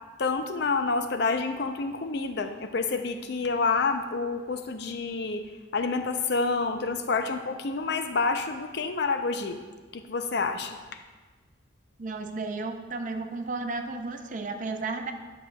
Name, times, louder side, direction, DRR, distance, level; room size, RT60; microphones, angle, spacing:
voice 1, 0.2-5.4 5.7-9.6 9.9-10.8, left 4 dB, 65° left, 7 dB, 0.5 m, -28 dB
voice 2, 12.0-15.1, right 3 dB, 45° right, 6 dB, 0.5 m, -33 dB
11.0 x 6.2 x 2.3 m, 1.3 s
head